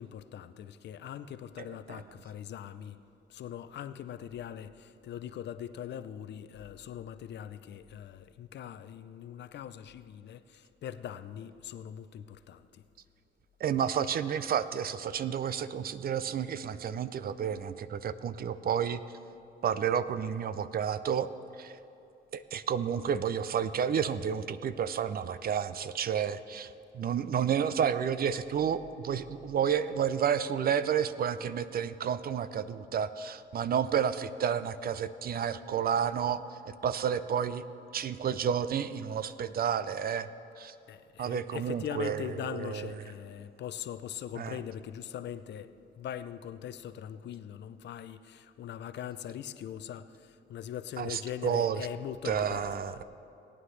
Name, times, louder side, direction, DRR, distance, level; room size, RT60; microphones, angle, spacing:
voice 1, 0.0-3.0 3.3-12.8 40.9-45.7 46.0-53.0, left 10 dB, 60° left, 12 dB, 0.5 m, -41 dB
voice 2, 1.6-2.0 13.6-19.0 19.6-21.3 21.6-21.8 22.3-37.6 37.9-40.3 40.6-40.7 41.2-42.9 44.4-44.6 51.0-51.8 52.2-53.0, right 8 dB, 50° right, 14 dB, 0.5 m, -31 dB
18.5 x 9.5 x 3.3 m, 2.8 s
cardioid pair, 90°, 20 cm